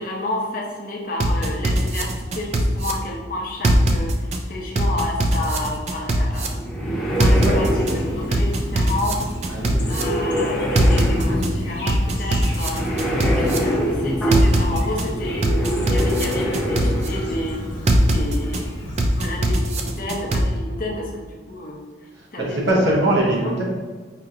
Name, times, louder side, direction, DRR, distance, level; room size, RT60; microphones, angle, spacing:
voice 1, 0.0-6.6 7.2-17.6 18.1-18.7 19.1-21.8 22.3-22.8 23.2-23.5, left 1 dB, 50° left, -1 dB, 0.6 m, -30 dB
sound 1, 1.2-2.9 3.6-4.4 4.8-6.5 7.2-7.9 8.3-10.0 10.8-11.5 11.9-13.6 14.3-15.0 15.4-17.1 17.9-18.6 19.0-20.4, right 1 dB, 35° right, 0.3 m, -21 dB
sound 2, 6.3-18.1, equal, ahead, 0.8 m, -25 dB
Chirp tweet, 7.1-19.4, equal, 30° left, 0.9 m, -37 dB
voice 2, 9.5-9.9 13.2-13.4 18.8-18.9 22.1-23.6, right 1 dB, 75° right, -3 dB, 0.9 m, -22 dB
5.0 x 2.8 x 2.4 m, 1.4 s
head